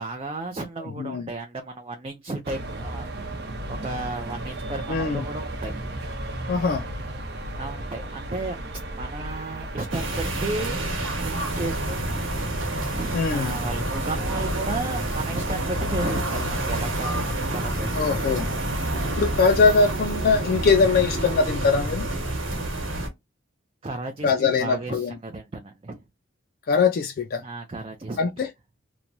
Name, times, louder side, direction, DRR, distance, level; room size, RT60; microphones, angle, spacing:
voice 1, 0.0-3.3 3.7-5.7 7.6-8.6 8.9-10.8 11.2-18.3 23.8-26.0 27.4-28.3, right 2 dB, 30° right, 0.4 m, -34 dB
sound 1, 2.4-19.2, right 1 dB, 60° right, 0.8 m, -35 dB
voice 2, 4.9-5.2 6.5-6.8 13.1-13.5 18.0-18.5 19.2-22.0 24.2-25.2 26.7-27.4 28.2-28.5, left 4 dB, 50° left, 0.3 m, -21 dB
sound 2, 9.9-23.1, right 1 dB, 90° right, 1.2 m, -28 dB
3.0 x 2.2 x 2.6 m
head